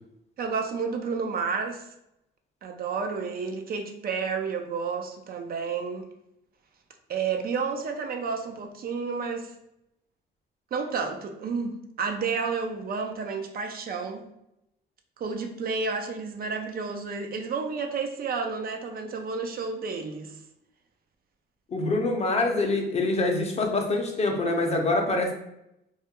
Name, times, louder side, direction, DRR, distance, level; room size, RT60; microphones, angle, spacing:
voice 1, 0.4-1.9 2.6-6.1 7.1-9.5 10.7-14.2 15.2-20.4, right 5 dB, 50° right, 5 dB, 0.4 m, -31 dB
voice 2, 21.7-25.3, left 2 dB, 35° left, 2 dB, 0.5 m, -25 dB
2.3 x 2.1 x 2.8 m, 0.83 s
cardioid pair, 90°, 20 cm